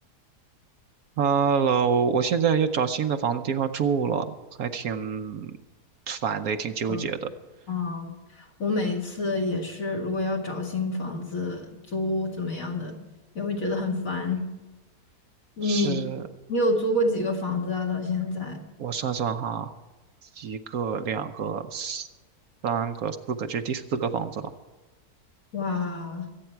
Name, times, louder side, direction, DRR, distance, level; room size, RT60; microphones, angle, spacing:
voice 1, 1.2-4.3 4.6-5.5 6.1-7.3 15.6-16.2 18.8-19.7 20.2-22.1 22.6-24.5, right 6 dB, 70° right, 7 dB, 1.2 m, -27 dB
voice 2, 7.7-13.0 13.3-14.4 15.6-16.0 16.5-18.6 25.5-26.3, left 2 dB, 60° left, 2 dB, 2.6 m, -28 dB
23.5 x 8.9 x 4.6 m, 1.2 s
omnidirectional pair, 1.7 m